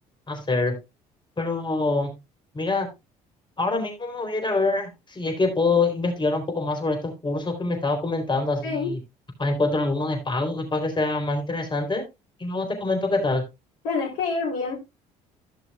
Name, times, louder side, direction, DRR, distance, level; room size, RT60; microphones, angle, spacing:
voice 1, 0.3-0.7 1.4-2.1 2.5-2.9 3.6-9.0 9.4-12.0 12.4-13.4, left 3 dB, 25° left, 3 dB, 3.8 m, -25 dB
voice 2, 13.8-14.7, left 4 dB, 70° left, -3 dB, 3.4 m, -27 dB
16.0 x 6.0 x 2.4 m, 0.23 s
hypercardioid pair, 60°, 18 cm